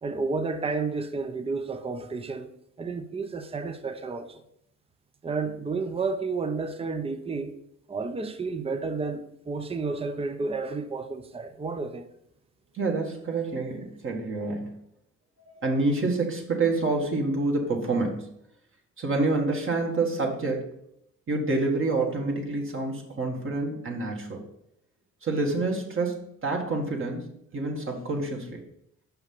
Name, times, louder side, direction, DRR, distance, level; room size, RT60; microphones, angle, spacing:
voice 1, 0.0-2.5 2.8-4.4 5.2-7.5 7.9-12.1, right 4 dB, 20° right, 0.7 m, -31 dB
voice 2, 12.7-14.7 15.6-18.3 19.0-20.7 21.3-24.4 25.2-28.6, right 3 dB, 45° right, 1.8 m, -27 dB
5.8 x 5.7 x 5.5 m
cardioid pair, 90°, 30 cm